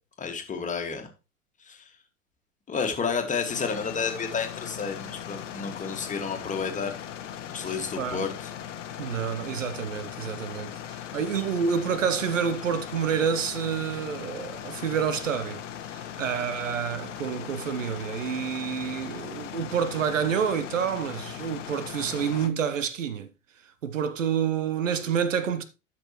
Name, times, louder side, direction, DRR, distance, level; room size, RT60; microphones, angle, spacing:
voice 1, 0.2-1.1 1.6-1.9 2.7-7.0 7.5-8.5, left 5 dB, 20° left, 2.0 m, -31 dB
sound 1, 3.5-22.5, left 10 dB, 65° left, 1.1 m, -39 dB
voice 2, 7.7-8.3 9.0-15.6 15.9-23.3 23.8-25.6, right 7 dB, 70° right, 1.0 m, -28 dB
13.0 x 6.1 x 3.1 m
figure-of-eight pair, 80°, 40 cm